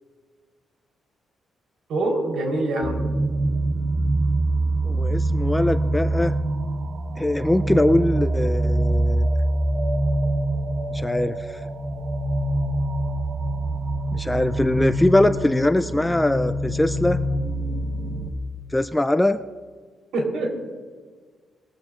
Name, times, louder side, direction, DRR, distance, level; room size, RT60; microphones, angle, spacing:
voice 1, 1.9-3.0 20.1-20.6, right 2 dB, 75° right, 1 dB, 3.6 m, -24 dB
sound 1, 2.8-18.3, right 1 dB, 45° right, 1.0 m, -24 dB
voice 2, 4.8-6.3 7.2-9.3 10.9-11.4 14.1-17.2 18.7-19.4, left 1 dB, 5° left, 10 dB, 0.3 m, -21 dB
20.5 x 14.0 x 2.4 m, 1.5 s
cardioid pair, 175°, 0 cm